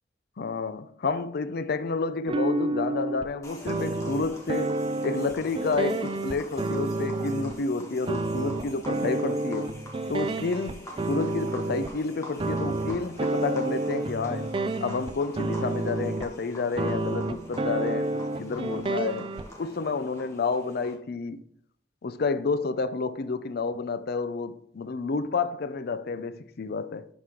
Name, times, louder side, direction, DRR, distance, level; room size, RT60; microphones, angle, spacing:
voice 1, 0.4-9.8 10.1-14.5 14.8-19.3 19.6-21.4 22.0-27.1, left 4 dB, 55° left, 0.5 m, -30 dB
sound 1, 2.3-3.3 3.6-7.6 8.1-11.9 12.4-16.4 16.8-19.5, right 2 dB, 30° right, 0.4 m, -30 dB
sound 2, 3.4-20.9, left 1 dB, 15° left, 1.5 m, -46 dB
11.0 x 4.8 x 3.8 m
head